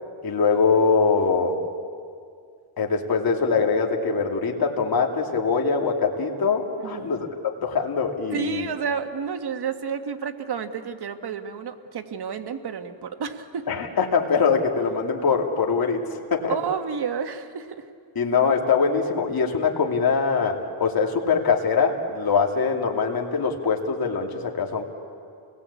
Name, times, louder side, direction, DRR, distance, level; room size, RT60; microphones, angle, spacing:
voice 1, 0.2-1.6 2.8-7.3 7.6-8.7 13.7-16.0 16.3-16.5 18.1-24.8, left 5 dB, 45° left, 1 dB, 3.0 m, -23 dB
voice 2, 6.8-7.2 8.2-13.7 16.5-17.9, right 6 dB, 50° right, 7 dB, 1.8 m, -30 dB
29.0 x 20.0 x 8.5 m, 2.3 s
cardioid pair, 85°, 50 cm